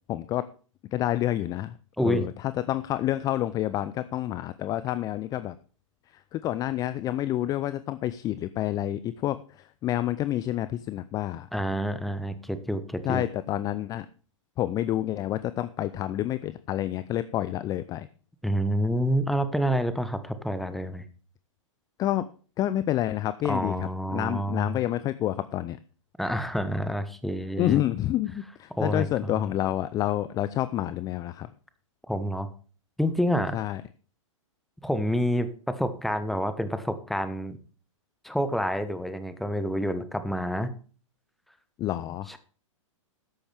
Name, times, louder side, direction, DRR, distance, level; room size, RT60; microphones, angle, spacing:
voice 1, 0.1-0.4 0.9-2.3 2.7-5.5 6.1-11.5 13.0-14.1 14.6-18.1 22.0-22.3 22.6-25.8 27.6-31.5 33.5-33.8 41.8-42.3, left 13 dB, 20° left, 15 dB, 0.5 m, -28 dB
voice 2, 11.5-13.3 18.4-21.0 23.4-24.8 26.2-27.8 28.7-29.4 32.1-32.5 33.0-33.6 34.8-37.6 38.2-40.7 42.3-42.4, equal, ahead, 11 dB, 1.2 m, -28 dB
13.5 x 10.5 x 3.4 m, 0.38 s
figure-of-eight pair, 110°, 17 cm